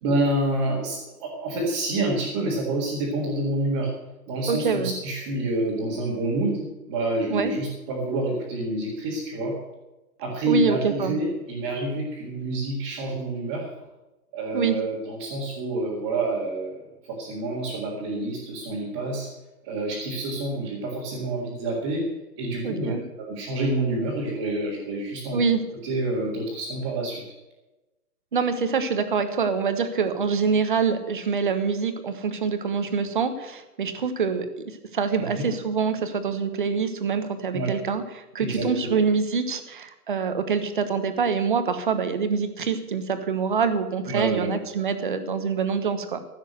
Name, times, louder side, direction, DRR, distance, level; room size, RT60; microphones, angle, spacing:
voice 1, 0.0-3.9 4.3-9.6 10.2-13.7 14.3-19.3 19.6-22.1 22.4-25.4 25.8-27.2 35.2-35.5 37.5-37.7 38.4-39.0 44.1-44.5, right 2 dB, 15° right, -7 dB, 1.9 m, -28 dB
voice 2, 4.5-4.9 7.3-7.5 10.5-11.1 14.5-14.8 22.6-23.0 25.3-25.6 28.3-34.5 34.9-46.2, right 5 dB, 30° right, 10 dB, 1.2 m, -25 dB
15.5 x 7.3 x 7.8 m, 1.0 s
hypercardioid pair, 180°, 47 cm